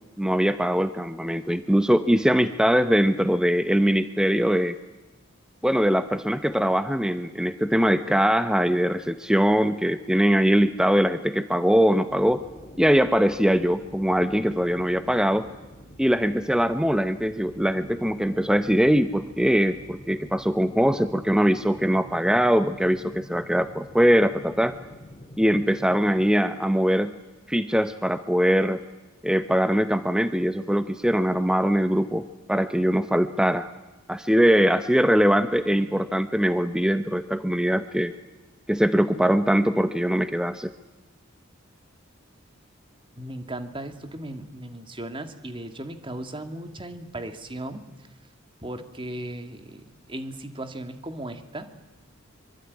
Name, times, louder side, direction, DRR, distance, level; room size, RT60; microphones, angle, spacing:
voice 1, 0.2-4.8 5.6-12.4 12.8-15.5 16.0-24.7 25.4-27.1 27.5-28.8 29.2-33.7 34.1-38.1 38.7-40.7, equal, 5° right, 10 dB, 0.8 m, -22 dB
sound 1, 12.1-26.3, equal, 25° left, 2.7 m, -46 dB
voice 2, 43.2-48.1 48.6-49.8 50.1-51.7, right 1 dB, 25° right, 8 dB, 2.3 m, -36 dB
24.5 x 24.5 x 9.7 m, 1.1 s
head